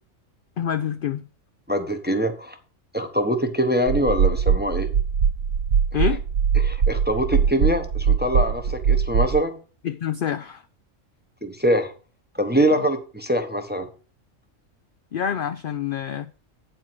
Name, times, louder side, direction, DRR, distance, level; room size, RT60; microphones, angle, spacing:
voice 1, 0.6-1.2 5.9-6.2 9.8-10.6 12.7-12.9 15.1-16.3, left 9 dB, 65° left, 0.5 m, -27 dB
voice 2, 1.7-2.6 2.9-4.9 6.6-9.6 11.4-11.9 12.3-13.9, equal, 10° right, 0.7 m, -23 dB
sound 1, 3.9-9.4, right 7 dB, 85° right, 1.2 m, -21 dB
8.9 x 4.4 x 6.0 m
omnidirectional pair, 1.3 m